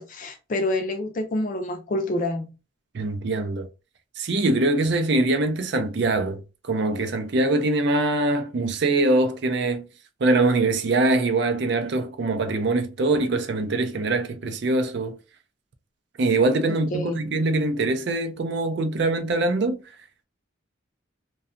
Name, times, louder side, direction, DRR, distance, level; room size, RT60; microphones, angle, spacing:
voice 1, 0.0-2.5 16.9-17.2, left 1 dB, 40° left, 0.4 m, -27 dB
voice 2, 2.9-3.7 4.2-9.9 10.2-15.2 16.2-19.8, right 2 dB, 55° right, 0.4 m, -23 dB
2.7 x 2.2 x 2.4 m
head